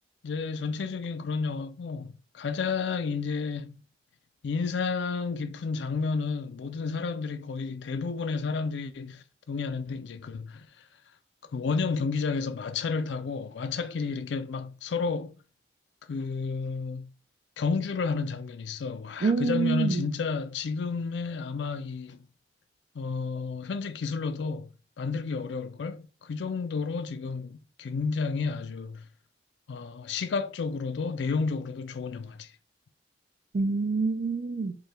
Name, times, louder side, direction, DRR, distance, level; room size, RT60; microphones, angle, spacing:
voice 1, 0.2-3.8 4.4-10.7 11.5-15.3 16.1-17.1 17.6-22.2 23.0-24.7 25.0-29.1 29.7-32.5, left 4 dB, 70° left, 0.4 m, -31 dB
voice 2, 19.2-20.1 33.5-34.8, right 4 dB, 45° right, 0.4 m, -26 dB
4.6 x 2.2 x 3.2 m
head